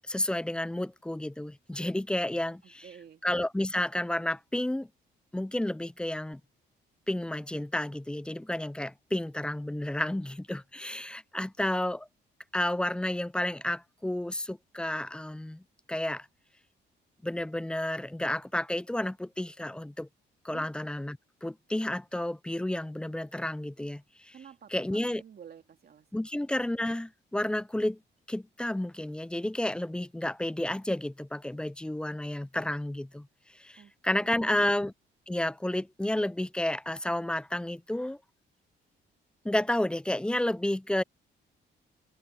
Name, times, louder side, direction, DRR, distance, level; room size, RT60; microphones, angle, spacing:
voice 1, 0.1-2.8 3.2-4.9 5.3-6.4 7.1-12.1 12.5-15.6 15.9-16.3 17.2-20.1 20.4-24.3 24.7-25.2 26.1-28.0 28.3-33.3 33.5-34.9 35.3-38.2 39.4-41.0, left 1 dB, 5° left, 0.3 m, -31 dB
voice 2, 2.6-3.2 20.5-20.7 24.3-26.1 33.8-34.6, right 8 dB, 50° right, 2.4 m, -51 dB
cardioid pair, 90°, 20 cm